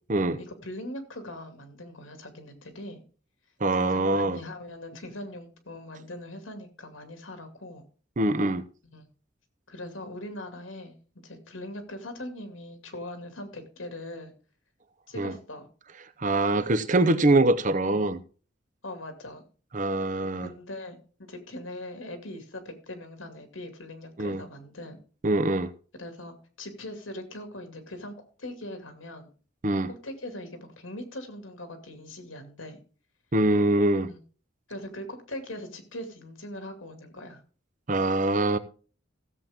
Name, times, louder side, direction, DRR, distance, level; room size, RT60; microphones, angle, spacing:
voice 1, 0.4-3.0 3.7-7.8 8.9-9.1 9.7-10.9 11.2-14.3 15.1-15.7 18.8-19.4 20.1-25.0 25.9-29.3 29.9-32.8 34.1-34.2 34.7-37.4, left 1 dB, 90° left, 2.5 m, -41 dB
voice 2, 3.6-4.4 8.2-8.6 15.2-15.3 16.2-18.2 19.7-20.5 24.2-24.4 25.2-25.7 29.6-29.9 33.3-34.1 37.9-38.6, right 2 dB, 40° right, 0.8 m, -23 dB
16.0 x 7.5 x 3.6 m
head